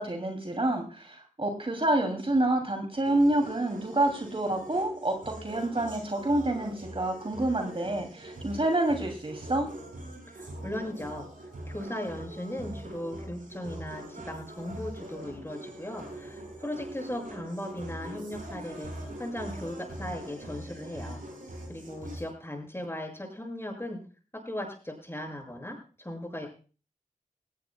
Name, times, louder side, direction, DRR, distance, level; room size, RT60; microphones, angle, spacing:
voice 1, 0.0-9.7, right 1 dB, 40° right, 4 dB, 2.7 m, -28 dB
sound 1, 3.0-22.2, right 1 dB, 80° right, 7.3 m, -43 dB
voice 2, 10.3-11.3 11.6-18.9 19.2-21.2 21.7-24.0 24.4-26.5, left 1 dB, 15° left, 2 dB, 6.7 m, -37 dB
17.5 x 17.0 x 2.3 m, 0.36 s
cardioid pair, 40°, 14 cm